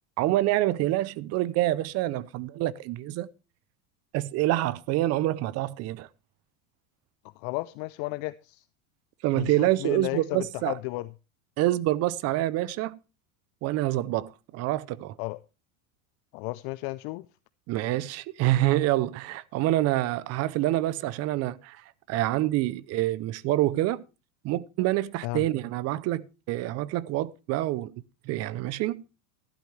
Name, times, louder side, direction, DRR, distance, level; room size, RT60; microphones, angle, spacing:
voice 1, 0.2-3.3 4.1-6.1 9.2-10.8 11.6-13.0 13.6-15.1 17.7-21.8 22.1-24.0 24.4-27.9 28.3-29.0, right 15 dB, 35° right, 0.5 m, -27 dB
voice 2, 7.4-8.6 9.3-11.1 15.2-15.4 16.3-17.3 25.2-25.4, left 22 dB, 50° left, 0.5 m, -33 dB
13.5 x 11.5 x 3.2 m
supercardioid pair, 140°, 42 cm